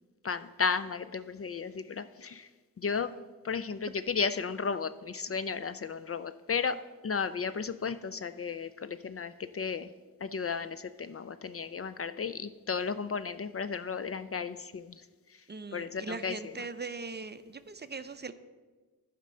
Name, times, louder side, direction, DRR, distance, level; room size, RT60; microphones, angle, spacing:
voice 1, 0.2-2.5 2.8-3.1 3.4-9.9 10.2-14.9 15.7-16.5, left 5 dB, 40° left, 13 dB, 0.4 m, -34 dB
voice 2, 15.5-18.3, right 4 dB, 30° right, 11 dB, 0.5 m, -40 dB
11.0 x 5.2 x 5.6 m, 1.3 s
cardioid pair, 60°, 36 cm